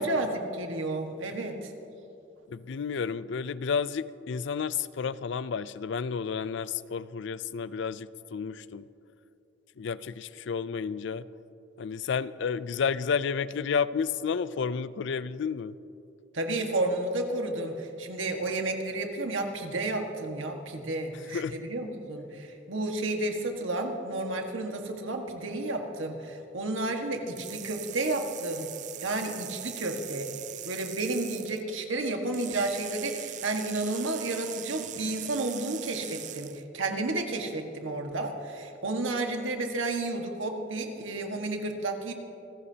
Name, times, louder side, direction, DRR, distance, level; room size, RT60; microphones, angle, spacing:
voice 1, 0.0-1.7 16.3-28.7 29.0-30.3 30.6-42.1, right 2 dB, 85° right, 3 dB, 1.6 m, -31 dB
voice 2, 2.5-8.9 9.8-11.3 11.8-15.8 21.3-21.7, left 6 dB, 65° left, 17 dB, 0.4 m, -31 dB
sound 1, 27.4-31.6 32.3-36.6, right 12 dB, 40° right, 0.4 m, -41 dB
27.0 x 15.0 x 2.9 m, 2.8 s
head